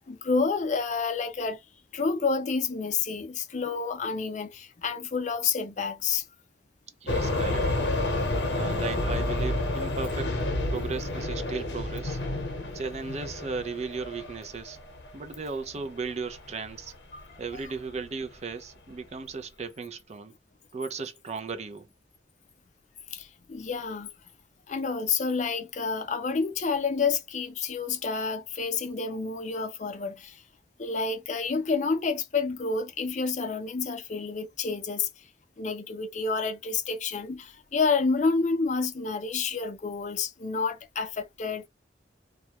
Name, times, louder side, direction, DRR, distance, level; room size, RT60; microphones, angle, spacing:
voice 1, 0.1-1.6 1.9-6.2 17.1-17.4 23.1-24.1 24.7-30.4 30.8-35.1 35.6-41.7, left 4 dB, 45° left, 0.5 m, -29 dB
voice 2, 7.0-7.7 8.1-12.2 12.7-14.8 15.1-16.9 17.4-20.3 20.7-21.9, right 4 dB, 40° right, 0.5 m, -36 dB
sound 1, 7.1-15.6 16.1-16.5 16.9-17.0 17.5-17.6 17.9-18.1, left 2 dB, 75° left, 0.8 m, -30 dB
2.3 x 2.1 x 2.8 m
head